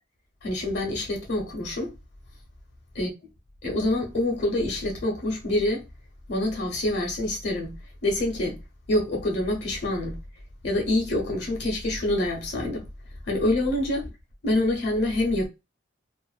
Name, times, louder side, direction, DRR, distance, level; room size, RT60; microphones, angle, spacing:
voice 1, 0.4-1.9 2.9-3.1 3.6-5.8 6.3-7.8 8.0-8.6 8.9-10.2 10.6-12.9 13.2-14.1 14.4-15.5, left 1 dB, 60° left, 0.7 m, -26 dB
2.5 x 2.2 x 2.3 m
head